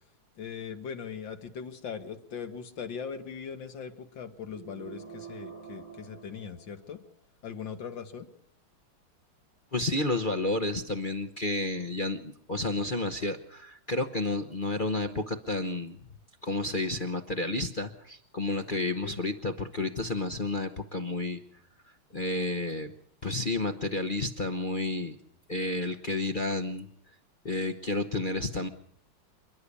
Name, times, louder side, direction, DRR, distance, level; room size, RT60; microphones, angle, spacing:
voice 1, 0.4-7.0 7.4-8.3 19.0-19.2, left 6 dB, 70° left, 8 dB, 2.2 m, -40 dB
sound 1, 4.5-7.2, right 7 dB, 85° right, 4.4 m, -47 dB
voice 2, 9.7-16.0 16.4-21.4 22.1-22.9 23.2-25.2 25.5-26.9 27.4-28.7, left 2 dB, 35° left, 5 dB, 0.8 m, -31 dB
28.0 x 11.5 x 8.4 m, 0.68 s
omnidirectional pair, 2.2 m